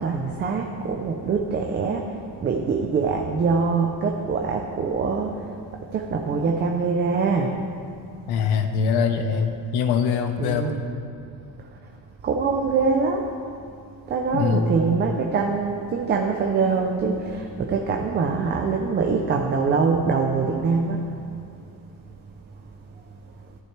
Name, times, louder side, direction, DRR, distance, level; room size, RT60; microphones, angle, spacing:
voice 1, 0.0-2.1 2.4-5.3 5.9-7.5 10.4-10.8 12.2-13.2 14.1-21.0, right 5 dB, 25° right, 2 dB, 0.6 m, -23 dB
voice 2, 8.3-10.8 14.3-14.8, left 6 dB, 70° left, 7 dB, 1.1 m, -23 dB
14.5 x 12.5 x 3.3 m, 2.4 s
cardioid pair, 165°, 40 cm